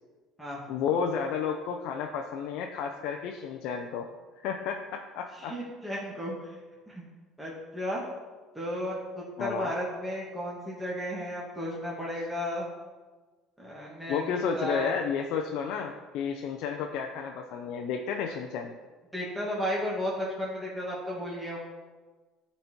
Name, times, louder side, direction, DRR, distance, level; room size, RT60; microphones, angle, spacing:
voice 1, 0.7-4.1 4.4-5.5 9.4-9.7 14.1-18.7, left 6 dB, 70° left, 3 dB, 0.6 m, -32 dB
voice 2, 5.4-6.6 6.9-7.0 7.4-8.0 8.6-12.7 13.6-15.0 19.1-21.6, equal, ahead, -6 dB, 1.8 m, -34 dB
12.0 x 4.2 x 4.5 m, 1.3 s
supercardioid pair, 110°, 0 cm